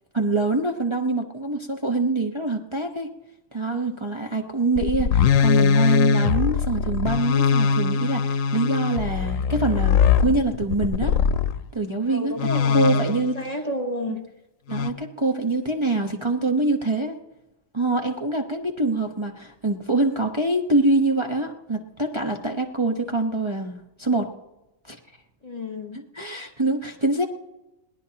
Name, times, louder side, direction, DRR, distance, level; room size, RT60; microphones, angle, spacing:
voice 1, 0.1-3.1 3.5-11.2 11.7-13.3 14.1-14.2 14.7-17.2 17.7-24.3 24.9-25.0 26.1-27.2, right 2 dB, 25° right, 1 dB, 1.0 m, -25 dB
sound 1, 4.8-11.6 12.4-13.4 14.7-14.9, left 6 dB, 90° left, 1.1 m, -21 dB
voice 2, 12.1-14.2 25.4-26.0, left 1 dB, 30° left, 4 dB, 1.4 m, -31 dB
21.5 x 17.5 x 2.9 m, 0.97 s
omnidirectional pair, 1.3 m